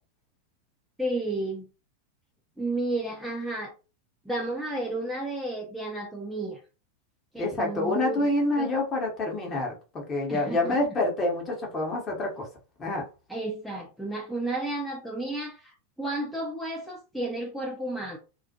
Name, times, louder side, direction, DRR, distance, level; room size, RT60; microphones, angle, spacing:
voice 1, 1.0-1.7 2.6-3.7 4.3-6.6 7.3-8.3 8.6-8.7 10.3-10.8 13.3-18.2, right 2 dB, ahead, 0.5 m, -32 dB
voice 2, 7.4-12.5 12.8-13.1, left 2 dB, 25° left, 0.9 m, -27 dB
2.3 x 2.1 x 2.7 m
figure-of-eight pair, 90°, 0 cm